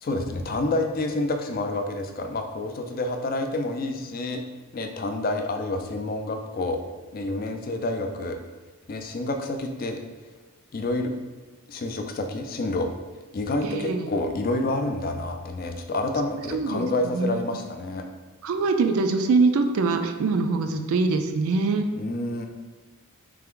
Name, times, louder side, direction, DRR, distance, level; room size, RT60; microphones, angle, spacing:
voice 1, 0.0-4.4 4.7-6.8 7.1-8.4 8.9-10.0 10.7-11.1 11.7-12.9 13.3-18.0 22.0-22.5, left 2 dB, 40° left, 5 dB, 0.4 m, -28 dB
voice 2, 13.6-14.1 16.5-17.4 18.4-21.9, right 3 dB, 70° right, 6 dB, 0.3 m, -23 dB
3.4 x 3.3 x 3.6 m, 1.3 s
head